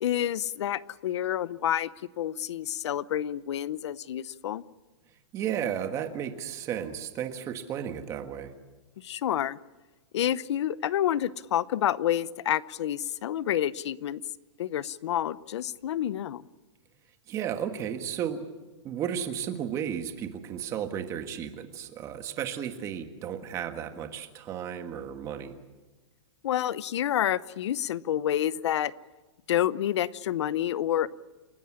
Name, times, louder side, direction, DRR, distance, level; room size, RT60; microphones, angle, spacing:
voice 1, 0.0-1.9 2.2-4.6 9.0-9.6 10.1-14.2 14.6-16.4 26.4-28.9 29.5-31.1, left 11 dB, 70° left, 18 dB, 0.8 m, -28 dB
voice 2, 5.3-8.5 17.3-18.4 18.8-25.5, right 9 dB, 20° right, 7 dB, 1.6 m, -33 dB
29.0 x 13.5 x 9.9 m, 1.2 s
supercardioid pair, 170°, 15 cm